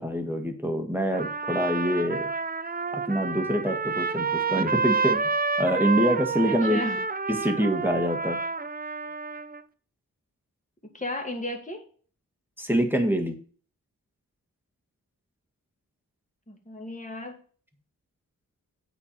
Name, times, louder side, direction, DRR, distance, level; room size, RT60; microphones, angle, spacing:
voice 1, 0.0-2.3 2.9-5.3 5.6-6.8 7.3-8.4 12.6-13.4, equal, 5° right, 5 dB, 1.7 m, -25 dB
Trumpet, 1.1-9.6, right 4 dB, 25° right, 0.5 m, -29 dB
voice 2, 6.5-7.0 10.9-11.8 16.5-17.4, left 1 dB, 20° left, 2 dB, 2.3 m, -34 dB
8.2 x 4.4 x 6.8 m, 0.43 s
wide cardioid pair, 60°, 35 cm